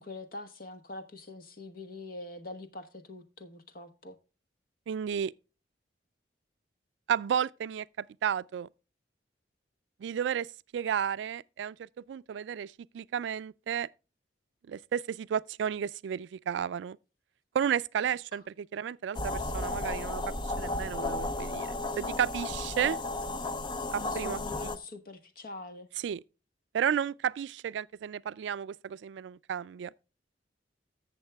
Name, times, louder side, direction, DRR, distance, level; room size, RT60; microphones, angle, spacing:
voice 1, 0.0-4.2 18.0-18.4 22.9-23.0 23.3-23.4 24.0-25.9, left 2 dB, 55° left, 1.1 m, -44 dB
voice 2, 4.9-5.3 7.1-8.7 10.0-10.5 10.7-13.9 14.7-17.0 17.5-23.0 23.9-24.4 26.0-26.2 26.7-29.9, right 8 dB, 75° right, 0.3 m, -32 dB
sound 1, 19.1-24.8, left 2 dB, 25° left, 0.6 m, -34 dB
14.5 x 7.1 x 2.2 m
head